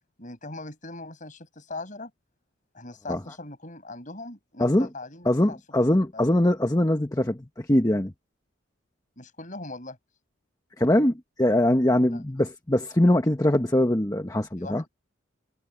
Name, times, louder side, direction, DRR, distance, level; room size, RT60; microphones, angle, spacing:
voice 1, 0.2-2.1 2.7-5.6 6.1-6.3 9.2-10.0 12.0-12.2 14.6-14.9, left 2 dB, 40° left, 6.2 m, -40 dB
voice 2, 5.2-8.1 10.8-14.8, left 1 dB, 15° left, 1.0 m, -22 dB
head